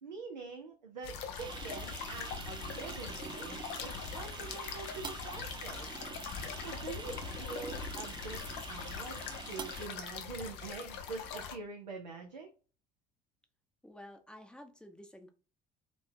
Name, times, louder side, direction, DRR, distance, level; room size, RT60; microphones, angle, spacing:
voice 1, 0.0-6.0 6.6-8.4 8.7-12.5, right 4 dB, 85° right, 2 dB, 0.5 m, -45 dB
sound 1, 1.0-11.6, left 6 dB, 60° left, 0.7 m, -42 dB
sound 2, 1.4-9.9, right 6 dB, 20° right, 0.4 m, -46 dB
voice 2, 13.8-15.3, left 1 dB, 5° left, 6 dB, 0.8 m, -51 dB
4.3 x 2.7 x 2.6 m, 0.36 s
figure-of-eight pair, 50°, 21 cm